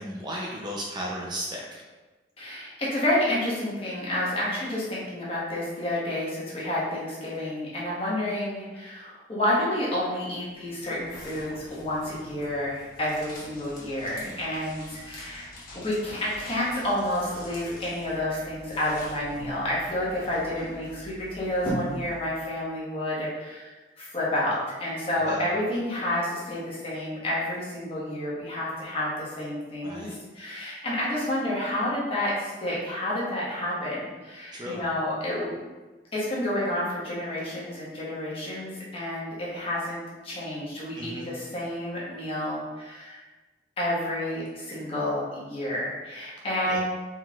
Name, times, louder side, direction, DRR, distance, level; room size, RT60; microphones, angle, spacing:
voice 1, 0.0-1.9 14.0-14.4 20.5-20.6 25.2-25.4 29.8-30.2 34.5-34.8 40.9-41.3 46.7-46.8, equal, 25° right, -2 dB, 0.4 m, -36 dB
voice 2, 2.4-35.6 36.1-43.2 43.8-46.8, left 1 dB, 30° left, -7 dB, 1.2 m, -30 dB
sound 1, 10.5-22.6, equal, 50° left, 1.2 m, -42 dB
4.4 x 3.9 x 2.3 m, 1.2 s
head